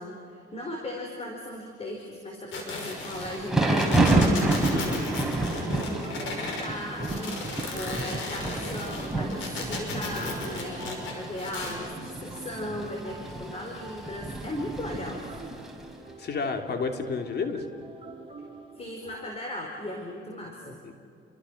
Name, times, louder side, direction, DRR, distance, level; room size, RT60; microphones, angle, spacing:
voice 1, 0.0-4.5 6.2-7.4 7.7-15.3 18.8-20.8, left 1 dB, 30° left, 1 dB, 4.6 m, -37 dB
sound 1, 2.5-6.7 7.0-11.7, left 3 dB, 75° left, 5.8 m, -36 dB
Thunder / Rain, 2.8-15.8, right 2 dB, ahead, 4.3 m, -29 dB
sound 2, 4.3-19.2, right 2 dB, 25° right, 5.8 m, -47 dB
voice 2, 4.7-5.1 16.2-17.6 20.8-20.9, left 4 dB, 55° left, 5 dB, 2.8 m, -31 dB
29.5 x 24.0 x 6.4 m, 2.6 s
cardioid pair, 90°, 20 cm